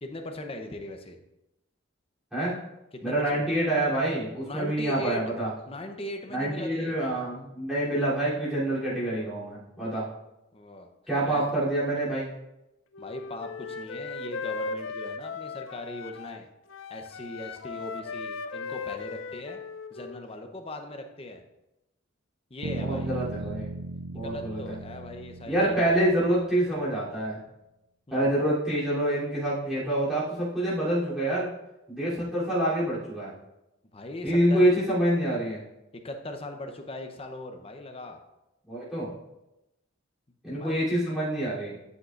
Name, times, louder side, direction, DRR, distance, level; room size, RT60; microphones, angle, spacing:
voice 1, 0.0-1.2 2.9-3.5 4.5-5.3 5.7-6.9 10.5-10.9 11.3-11.5 13.0-16.5 16.9-19.6 19.9-21.4 22.5-23.1 24.1-25.9 28.1-28.3 33.9-34.7 35.9-38.2 40.5-40.9, left 1 dB, 30° left, 5 dB, 0.7 m, -39 dB
voice 2, 3.0-5.5 6.3-10.0 11.1-12.3 22.8-23.8 24.1-24.8 25.4-27.4 28.1-31.5 31.9-33.3 34.2-35.6 38.7-39.1 40.4-41.8, right 1 dB, ahead, -11 dB, 3.1 m, -26 dB
Wind instrument woodwind instrument, 12.9-16.4 16.7-20.2, left 4 dB, 75° left, 0.5 m, -37 dB
sound 1, 22.6-26.6, right 3 dB, 65° right, 0.3 m, -37 dB
9.6 x 7.6 x 2.5 m, 0.93 s
head